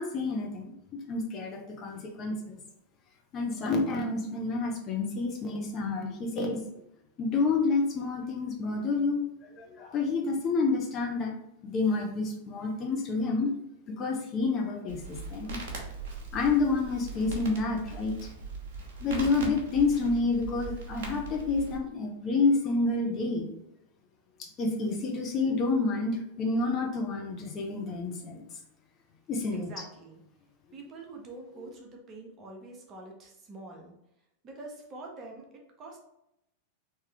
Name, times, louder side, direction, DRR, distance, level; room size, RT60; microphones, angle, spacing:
voice 1, 0.0-2.6 3.3-6.6 7.2-9.2 9.5-11.3 11.6-13.6 13.9-15.6 16.3-18.1 19.0-23.5 24.4-28.4 29.3-29.7, left 3 dB, 30° left, 1 dB, 0.7 m, -29 dB
Crackle, 14.9-21.8, right 3 dB, 50° right, 1.0 m, -40 dB
voice 2, 29.5-30.2 30.7-33.9 34.4-35.4 35.8-36.0, right 2 dB, 30° right, 1 dB, 0.9 m, -45 dB
3.6 x 2.9 x 3.3 m, 0.83 s
figure-of-eight pair, 90°, 0 cm